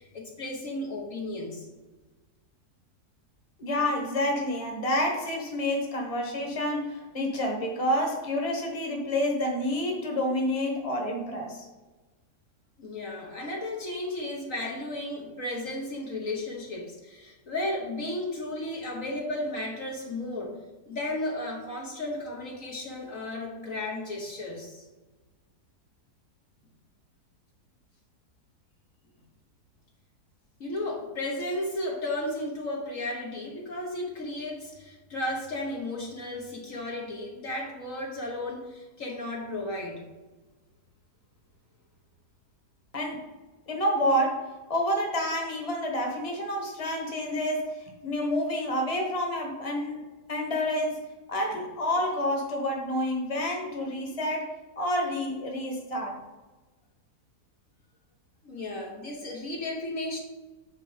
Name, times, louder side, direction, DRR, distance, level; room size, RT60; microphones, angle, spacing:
voice 1, 0.0-1.7 12.8-20.5 20.9-24.9 30.6-40.0 58.4-60.2, left 1 dB, 55° left, -1 dB, 1.5 m, -34 dB
voice 2, 3.6-11.7 42.9-43.2 43.7-50.0 50.3-51.0 51.3-56.2, left 1 dB, 25° left, 1 dB, 1.4 m, -29 dB
8.2 x 4.8 x 5.0 m, 1.2 s
omnidirectional pair, 1.7 m